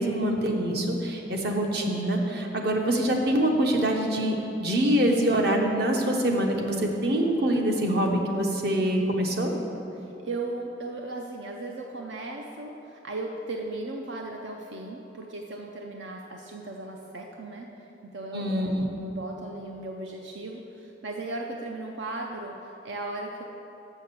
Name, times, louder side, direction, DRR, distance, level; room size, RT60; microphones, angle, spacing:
voice 1, 0.0-9.5 18.3-18.9, right 1 dB, 60° right, 1 dB, 1.0 m, -25 dB
voice 2, 9.9-17.7 18.0-23.4, right 2 dB, 75° right, 1 dB, 0.6 m, -37 dB
6.7 x 6.3 x 7.0 m, 3.0 s
head